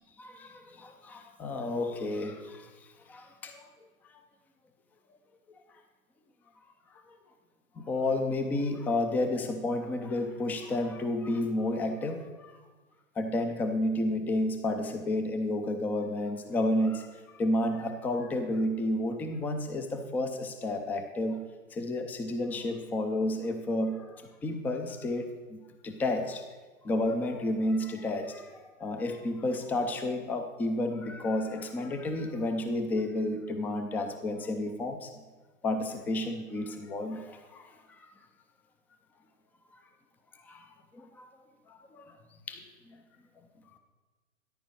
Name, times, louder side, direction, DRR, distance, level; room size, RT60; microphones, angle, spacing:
voice 1, 0.2-3.7 7.8-12.6 13.2-21.4 21.7-25.6 25.8-26.4 26.8-35.1 35.6-38.1 40.4-40.7 40.9-41.3 41.7-42.0 42.5-43.0, left 1 dB, 5° left, 7 dB, 0.4 m, -31 dB
13.5 x 10.5 x 4.7 m, 1.3 s
figure-of-eight pair, 105°, 41 cm